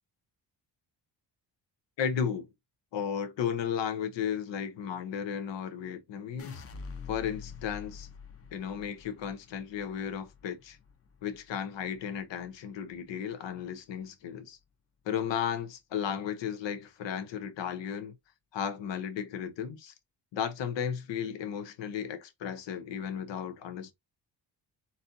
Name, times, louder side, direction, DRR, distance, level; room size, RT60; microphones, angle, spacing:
voice 1, 2.0-2.5 2.9-6.6 7.1-8.1 8.5-10.8 11.2-14.6 15.0-18.1 18.5-19.9 20.3-23.9, left 8 dB, 90° left, 0.9 m, -34 dB
sound 1, 6.4-12.6 12.9-13.5, left 5 dB, 35° left, 0.7 m, -47 dB
4.1 x 4.1 x 2.6 m
cardioid pair, 110°, 43 cm